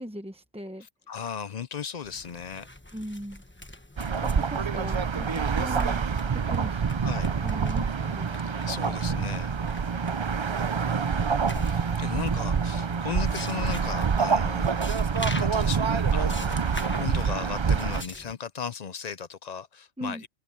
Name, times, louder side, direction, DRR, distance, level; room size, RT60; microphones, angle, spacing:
voice 1, 0.0-0.9 2.9-3.4 4.2-6.0 6.3-6.8 7.4-8.5 20.0-20.2, equal, 5° right, 0.8 m, -39 dB
voice 2, 0.8-2.7 7.0-7.3 8.7-9.5 11.6-14.7 15.3-20.3, left 6 dB, 50° left, 0.5 m, -36 dB
sound 1, 2.0-18.3, left 1 dB, 10° left, 1.2 m, -44 dB
sound 2, 4.0-18.0, right 6 dB, 40° right, 0.4 m, -26 dB
omnidirectional pair, 1.2 m